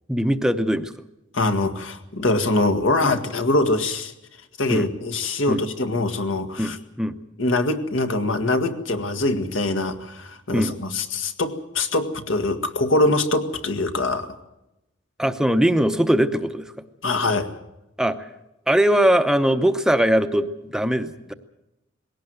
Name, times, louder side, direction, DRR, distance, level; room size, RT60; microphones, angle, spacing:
voice 1, 0.1-0.9 4.7-4.9 5.5-5.6 6.6-7.2 10.5-10.8 15.2-16.7 18.0-18.3 18.7-21.3, equal, 5° right, 8 dB, 0.8 m, -21 dB
voice 2, 1.3-4.1 4.6-6.8 7.4-14.3 17.0-17.5, left 2 dB, 70° left, 6 dB, 1.8 m, -23 dB
20.5 x 17.5 x 7.9 m, 0.91 s
head